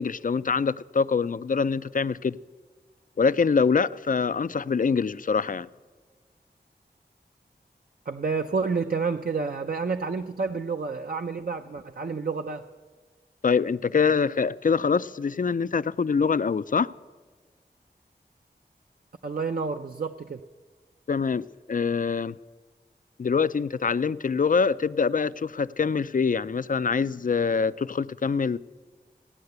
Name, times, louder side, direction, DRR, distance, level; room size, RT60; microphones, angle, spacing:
voice 1, 0.0-2.4 3.2-5.7 13.4-16.9 21.1-22.4 23.2-28.6, left 5 dB, 50° left, 0.4 m, -24 dB
voice 2, 8.1-12.6 19.2-20.4, right 4 dB, 55° right, 0.6 m, -29 dB
16.5 x 9.6 x 8.0 m
wide cardioid pair, 60°, 18 cm